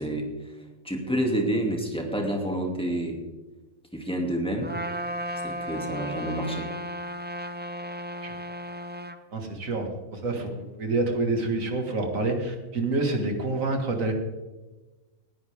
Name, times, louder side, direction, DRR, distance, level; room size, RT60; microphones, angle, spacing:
voice 1, 0.0-3.2 3.9-4.7 5.4-6.7, right 1 dB, 5° left, 1 dB, 2.5 m, -29 dB
Trumpet, 4.6-9.2, equal, 10° right, 0.5 m, -34 dB
voice 2, 9.3-14.1, right 2 dB, 80° right, 3 dB, 2.4 m, -27 dB
19.5 x 14.5 x 3.6 m, 1.2 s
omnidirectional pair, 1.4 m